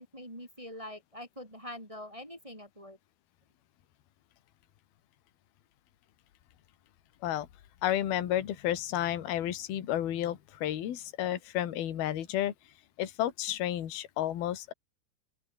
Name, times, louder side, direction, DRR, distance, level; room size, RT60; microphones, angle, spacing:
voice 1, 0.0-3.0, left 1 dB, 5° right, 4.8 m, -44 dB
voice 2, 7.8-12.5 13.0-14.7, left 12 dB, 60° left, 3.8 m, -31 dB
open air
omnidirectional pair, 5.2 m